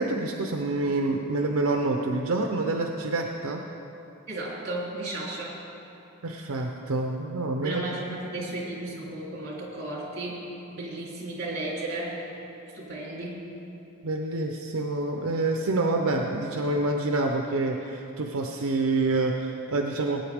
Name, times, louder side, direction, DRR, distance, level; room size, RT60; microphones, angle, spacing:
voice 1, 0.0-3.6 6.2-7.8 14.0-20.2, right 2 dB, 80° right, 2 dB, 0.7 m, -27 dB
voice 2, 4.3-5.6 7.5-12.3 12.7-13.4, right 2 dB, 50° right, -4 dB, 3.1 m, -34 dB
19.0 x 9.1 x 3.6 m, 2.9 s
head